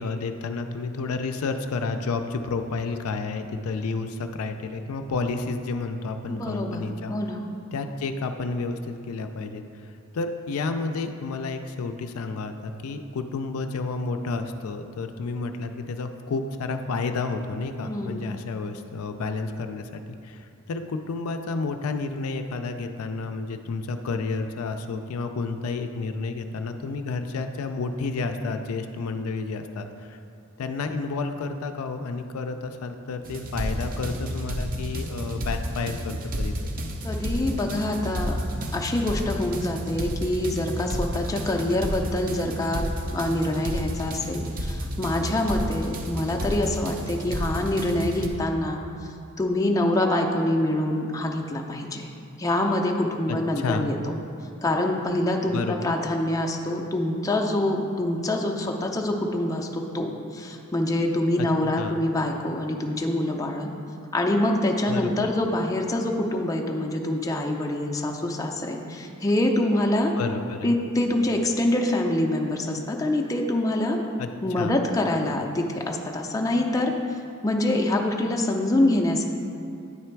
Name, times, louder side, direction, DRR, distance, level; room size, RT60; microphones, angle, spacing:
voice 1, 0.0-7.1 7.7-30.2 30.6-36.7 53.3-53.9 55.5-55.8 61.4-61.5 61.8-62.0 64.9-65.3 70.2-70.7 74.2-74.3 74.6-74.8, left 3 dB, 80° left, 7 dB, 0.4 m, -31 dB
voice 2, 6.3-7.4 17.8-18.3 37.0-38.4 38.7-48.8 49.4-52.1 52.4-54.0 54.6-63.7 64.1-70.1 70.6-74.0 74.4-76.9 77.4-79.2, left 1 dB, 15° left, 1 dB, 0.5 m, -25 dB
sound 1, 33.2-48.3, equal, 40° right, 0.5 m, -31 dB
9.4 x 3.3 x 4.5 m, 2.5 s
head